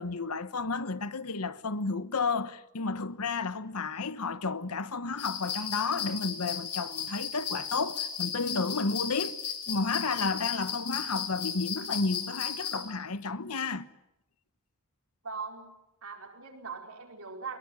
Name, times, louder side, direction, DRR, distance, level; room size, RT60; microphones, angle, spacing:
voice 1, 0.0-9.4 9.7-13.9, left 4 dB, 80° left, 1.2 m, -32 dB
sound 1, 5.2-12.8, left 7 dB, 50° left, 5.6 m, -35 dB
voice 2, 15.2-17.6, right 5 dB, 65° right, 5.0 m, -41 dB
23.0 x 22.5 x 9.0 m
head